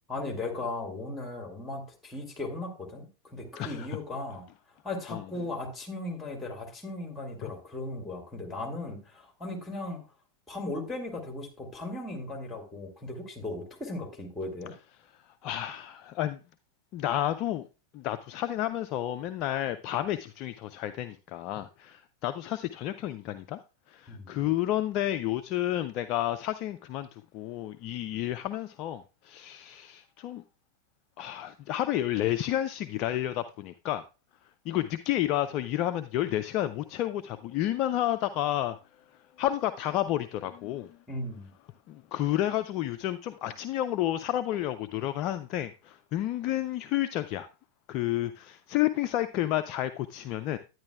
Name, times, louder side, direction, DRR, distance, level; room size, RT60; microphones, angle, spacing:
voice 1, 0.1-4.5 4.8-10.0 10.5-14.7 24.1-24.4 41.1-41.5, left 2 dB, 10° left, 2.2 m, -37 dB
voice 2, 3.6-3.9 5.1-5.2 7.4-7.5 15.4-16.4 16.9-17.7 17.9-23.6 23.9-30.4 31.2-34.0 34.7-38.8 39.4-41.0 41.9-47.5 47.9-50.6, left 13 dB, 40° left, 0.3 m, -31 dB
10.5 x 9.2 x 2.3 m
figure-of-eight pair, 90°, 0 cm